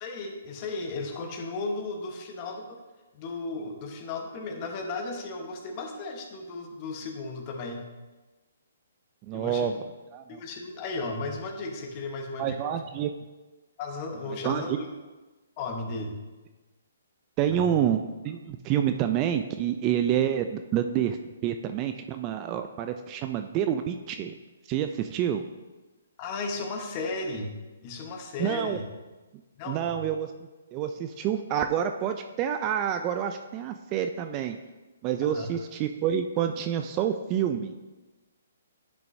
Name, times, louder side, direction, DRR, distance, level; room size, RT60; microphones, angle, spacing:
voice 1, 0.0-2.8 3.1-7.8 9.3-9.7 10.3-12.8 13.8-14.9 15.6-16.2 17.5-17.8 26.2-27.5 27.8-28.8 29.6-30.0 35.2-35.5, left 3 dB, 30° left, 3 dB, 1.1 m, -35 dB
voice 2, 9.3-9.8 10.1-10.4 12.4-13.1 14.4-14.8 17.4-21.2 21.4-24.3 24.7-25.4 28.4-28.8 29.7-30.3 30.7-34.6 35.0-37.7, right 9 dB, 25° right, 7 dB, 0.3 m, -28 dB
10.5 x 6.2 x 2.7 m, 1.2 s
hypercardioid pair, 155°, 0 cm